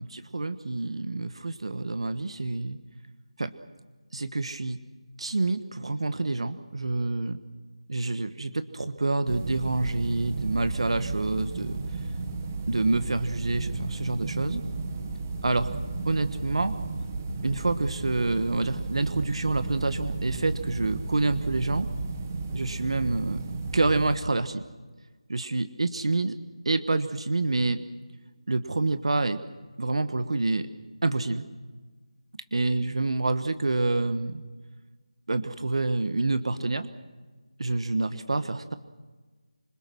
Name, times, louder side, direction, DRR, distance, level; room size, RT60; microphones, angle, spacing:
voice 1, 0.0-2.8 3.4-3.5 4.1-4.8 5.2-7.4 7.9-11.8 12.7-14.6 15.4-15.7 16.0-16.8 17.4-21.9 22.5-23.4 23.7-24.6 25.3-26.4 26.6-27.8 28.5-29.4 29.8-30.7 31.0-31.5 32.5-34.4 35.3-36.9 37.6-38.8, right 2 dB, 65° right, 10 dB, 1.3 m, -27 dB
sound 1, 9.3-24.2, right 3 dB, 25° right, 1.6 m, -33 dB
26.5 x 22.0 x 6.3 m, 1.3 s
figure-of-eight pair, 170°, 3 cm